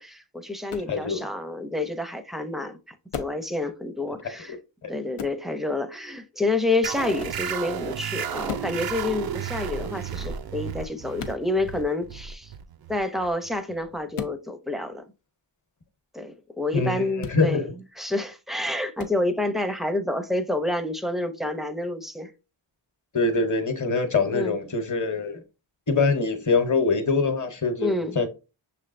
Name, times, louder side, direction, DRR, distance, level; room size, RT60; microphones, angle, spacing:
voice 1, 0.0-2.8 3.2-4.6 4.9-12.5 12.9-15.0 16.1-22.3 24.3-24.6 27.8-28.2, left 2 dB, ahead, 0.5 m, -28 dB
sound 1, 0.7-1.0 3.1-3.4 5.2-5.4 7.2-7.4 8.4-8.8 11.2-11.4 14.1-14.4 17.2-17.4 19.0-19.2, left 8 dB, 80° left, 0.7 m, -35 dB
voice 2, 0.9-1.2 4.2-4.3 4.8-4.9 16.7-17.7 23.1-25.4 25.9-28.3, left 4 dB, 35° left, 0.9 m, -24 dB
sound 2, 6.8-14.0, right 8 dB, 50° right, 0.4 m, -33 dB
6.1 x 3.2 x 2.5 m
wide cardioid pair, 70°, 49 cm